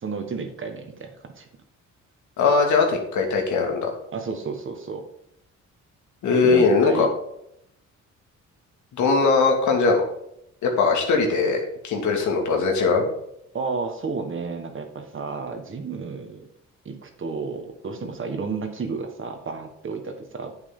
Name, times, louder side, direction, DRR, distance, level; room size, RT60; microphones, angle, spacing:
voice 1, 0.0-1.4 4.1-5.0 6.4-7.1 13.5-16.5 16.8-20.5, right 4 dB, 40° right, 5 dB, 1.5 m, -31 dB
voice 2, 2.4-3.9 6.2-7.1 9.0-10.0 10.6-13.1, left 4 dB, 75° left, 2 dB, 2.3 m, -20 dB
8.8 x 8.0 x 3.8 m, 0.77 s
cardioid pair, 90°, 30 cm